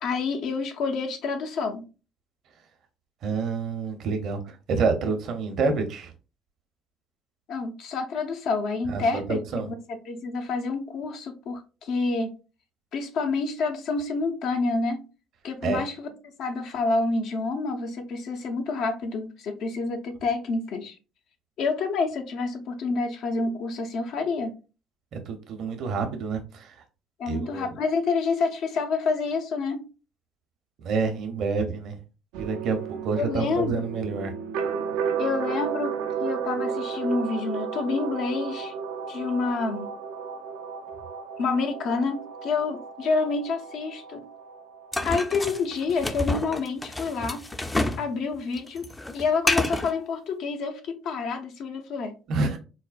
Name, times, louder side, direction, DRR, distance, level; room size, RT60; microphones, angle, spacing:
voice 1, 0.0-1.8 7.5-12.4 12.9-15.0 15.4-16.1 16.4-20.9 21.6-24.5 27.2-29.8 33.1-33.8 35.2-35.9 36.2-38.7 39.1-39.9 41.4-44.2 45.0-47.4 48.0-48.9 49.1-52.1, left 4 dB, 65° left, 0.7 m, -28 dB
voice 2, 3.2-6.1 8.9-9.7 15.6-15.8 25.1-26.8 27.3-27.7 30.8-32.0 32.4-34.3 52.3-52.6, right 4 dB, 60° right, 0.8 m, -28 dB
sound 1, 32.3-45.9, right 6 dB, 75° right, 0.4 m, -33 dB
sound 2, 44.9-48.1 48.3-49.9, left 2 dB, 15° left, 0.5 m, -28 dB
4.2 x 2.2 x 2.4 m
hypercardioid pair, 60°, 0 cm